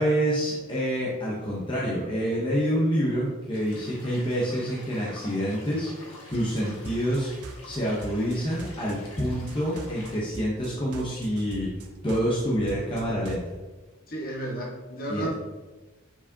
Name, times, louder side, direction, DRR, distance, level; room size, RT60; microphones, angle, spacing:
voice 1, 0.0-5.9 6.3-7.3 7.6-11.7 12.0-13.4 15.1-15.3, equal, 25° left, -5 dB, 1.0 m, -27 dB
sound 1, 3.5-10.2, left 1 dB, 75° left, 1.8 m, -47 dB
sound 2, 6.3-13.5, right 2 dB, 80° right, 0.6 m, -43 dB
voice 2, 14.1-15.3, right 1 dB, 45° left, -3 dB, 1.4 m, -32 dB
7.1 x 4.8 x 2.8 m, 1.2 s
head